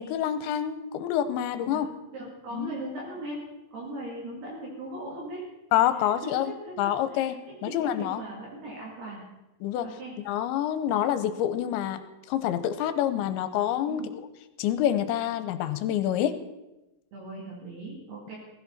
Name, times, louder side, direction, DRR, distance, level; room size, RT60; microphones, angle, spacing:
voice 1, 0.0-1.9 2.5-2.7 5.7-6.5 6.8-7.4 7.6-8.2 9.6-9.9 10.3-12.0 12.3-14.0 14.6-16.4, left 11 dB, 85° left, 11 dB, 3.1 m, -27 dB
voice 2, 2.1-3.4 3.7-5.4 6.2-9.2 9.8-10.2 13.9-14.1 17.1-18.4, right 2 dB, 60° right, -4 dB, 4.8 m, -39 dB
16.5 x 15.5 x 4.2 m, 0.97 s
omnidirectional pair, 5.2 m